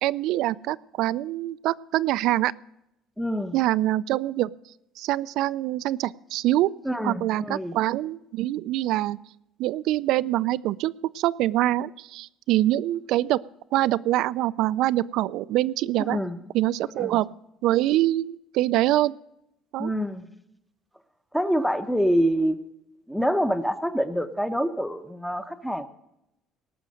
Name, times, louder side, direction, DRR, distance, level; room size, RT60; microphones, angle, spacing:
voice 1, 0.0-2.5 3.5-4.5 5.0-6.7 7.0-9.2 9.6-13.4 13.7-16.2 16.5-17.3 17.6-19.1 19.7-19.9, right 15 dB, 70° right, 18 dB, 0.4 m, -24 dB
voice 2, 3.2-3.6 6.8-7.7 16.0-16.4 17.0-17.2 19.8-20.3 21.3-22.6 23.1-25.9, equal, ahead, 9 dB, 0.8 m, -26 dB
18.5 x 6.2 x 7.7 m, 0.83 s
cardioid pair, 145°, 0 cm